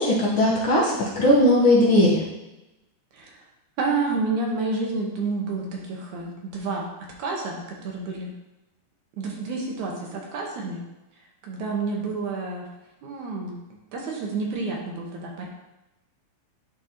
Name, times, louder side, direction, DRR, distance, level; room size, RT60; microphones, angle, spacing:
voice 1, 0.0-2.2, left 1 dB, 60° left, -5 dB, 1.5 m, -19 dB
voice 2, 3.1-3.5 3.8-8.3 9.2-10.9 11.4-12.7 13.0-15.5, right 3 dB, 75° right, -1 dB, 2.5 m, -29 dB
11.0 x 4.1 x 2.9 m, 0.97 s
omnidirectional pair, 3.5 m